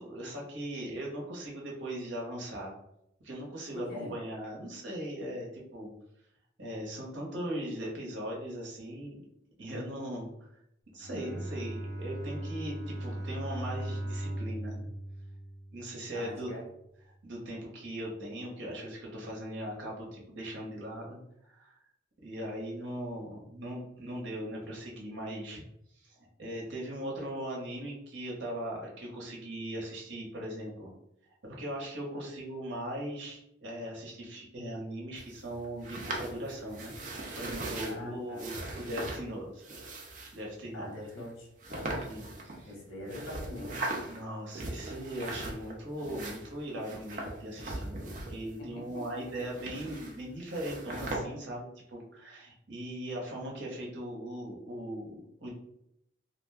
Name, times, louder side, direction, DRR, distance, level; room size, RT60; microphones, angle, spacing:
voice 1, 0.0-2.8 3.2-5.9 6.6-9.2 9.6-10.6 10.9-14.9 15.7-16.5 17.2-21.8 22.2-25.6 25.9-30.9 31.4-36.9 37.3-39.6 40.3-40.9 42.1-42.7 44.1-55.5, right 1 dB, 70° right, -2 dB, 0.9 m, -39 dB
voice 2, 3.7-4.2 16.1-16.7 37.9-38.5 40.7-42.1 42.6-43.8 48.6-49.2, left 1 dB, 90° left, -2 dB, 1.0 m, -42 dB
Bowed string instrument, 10.9-16.2, right 1 dB, 15° left, 0.5 m, -38 dB
sound 1, 35.2-37.9 38.4-39.2 39.6-40.4 41.1-41.2 41.6-42.7 43.1-44.2 44.5-45.7 46.0-48.6 48.9-50.2 50.5-51.2, right 2 dB, 40° right, 0.5 m, -39 dB
2.4 x 2.2 x 3.3 m, 0.80 s
head